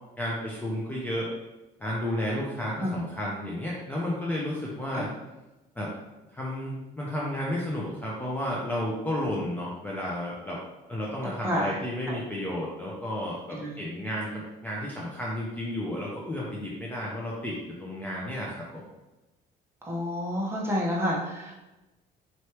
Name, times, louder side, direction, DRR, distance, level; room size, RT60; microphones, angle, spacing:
voice 1, 0.2-1.3 1.8-5.1 5.8-5.9 6.3-10.6 10.9-18.8, left 1 dB, 10° left, -5 dB, 0.7 m, -32 dB
voice 2, 11.4-11.7 12.1-12.2 13.5-13.8 19.8-21.5, equal, 15° right, -4 dB, 1.1 m, -29 dB
4.4 x 3.2 x 3.0 m, 1.0 s
cardioid pair, 110°, 17 cm